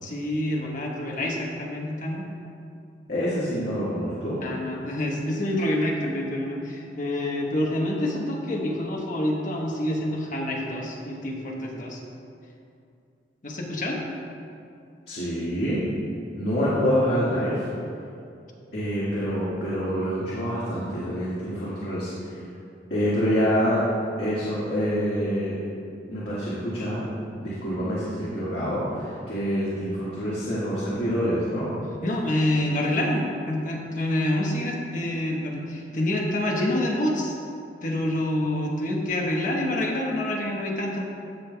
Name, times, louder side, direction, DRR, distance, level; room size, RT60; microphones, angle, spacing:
voice 1, 0.0-2.2 4.4-12.0 13.4-14.0 32.0-37.4 37.8-41.0, left 1 dB, 45° left, -1 dB, 1.1 m, -27 dB
voice 2, 3.1-4.4 15.1-15.8 16.3-17.6 18.7-22.1 22.9-23.8 24.2-25.6 26.1-27.0 27.4-31.7, equal, 65° left, -10 dB, 1.7 m, -26 dB
15.5 x 5.4 x 2.2 m, 2.5 s
head